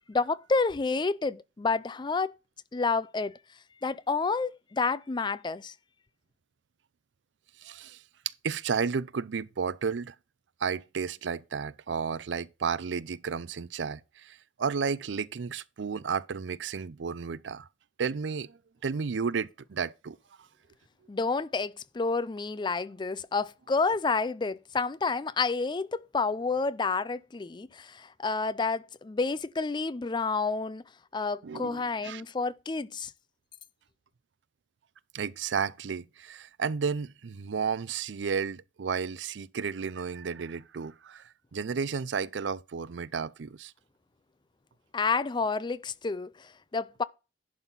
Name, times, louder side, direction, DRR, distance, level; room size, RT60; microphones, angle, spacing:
voice 1, 0.1-2.3 2.7-3.4 3.8-5.7 21.1-30.8 31.1-33.1 44.9-47.0, left 4 dB, 25° left, 0.4 m, -29 dB
voice 2, 7.6-8.0 8.4-10.1 10.6-17.7 18.0-20.2 31.4-32.2 35.1-41.2 41.5-43.7, right 6 dB, 85° right, 0.5 m, -32 dB
11.0 x 4.2 x 5.6 m
head